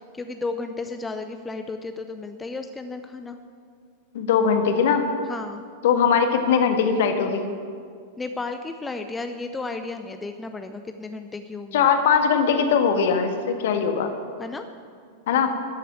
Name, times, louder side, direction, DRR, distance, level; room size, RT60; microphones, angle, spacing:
voice 1, 0.0-3.4 5.3-5.6 8.2-11.9 14.4-14.6, left 3 dB, 10° left, 7 dB, 0.7 m, -33 dB
voice 2, 4.1-5.0 5.8-7.5 11.7-14.1 15.3-15.5, left 6 dB, 55° left, 6 dB, 1.5 m, -20 dB
14.0 x 8.4 x 8.6 m, 2.2 s
figure-of-eight pair, 90°, 0 cm